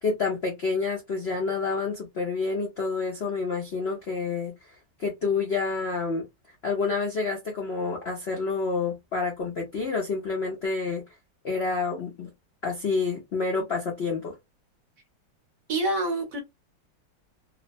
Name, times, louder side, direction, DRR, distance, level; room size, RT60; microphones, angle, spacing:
voice 1, 0.0-4.5 5.0-6.3 6.6-11.0 11.4-12.3 12.6-14.3, left 4 dB, 70° left, 0.6 m, -28 dB
voice 2, 15.7-16.4, right 2 dB, 60° right, 1.0 m, -26 dB
3.0 x 2.0 x 2.5 m
omnidirectional pair, 2.0 m